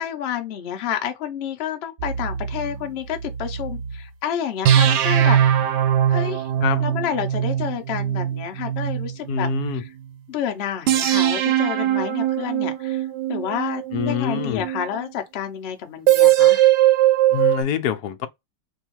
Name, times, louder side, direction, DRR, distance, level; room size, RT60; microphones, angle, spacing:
voice 1, 0.0-5.4 6.1-6.5 6.8-9.9 10.3-16.7, left 9 dB, 55° left, 0.7 m, -29 dB
sound 1, 2.0-4.0 4.6-9.9 10.9-15.1 16.1-17.6, right 11 dB, 80° right, 1.2 m, -21 dB
voice 2, 9.3-9.8 13.9-14.6 17.3-18.3, left 9 dB, 75° left, 1.1 m, -25 dB
3.4 x 2.3 x 3.0 m
omnidirectional pair, 1.8 m